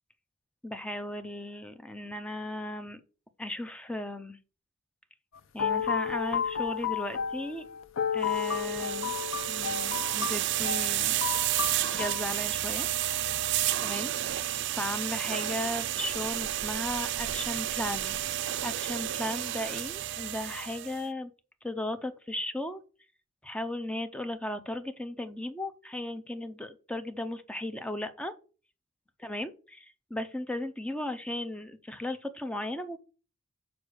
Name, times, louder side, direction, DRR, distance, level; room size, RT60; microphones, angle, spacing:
voice 1, 0.6-3.0 3.4-4.4 5.5-7.7 8.1-9.2 9.5-11.3 11.9-12.9 13.8-14.5 14.8-18.2 18.6-21.3 21.6-22.8 23.4-28.3 29.2-33.0, left 1 dB, 5° left, 9 dB, 0.5 m, -36 dB
Peaceful Piano Loop, 5.4-12.3, left 7 dB, 65° left, 0.5 m, -32 dB
sound 1, 8.3-21.0, right 13 dB, 55° right, 0.4 m, -31 dB
6.6 x 5.2 x 6.2 m, 0.36 s
head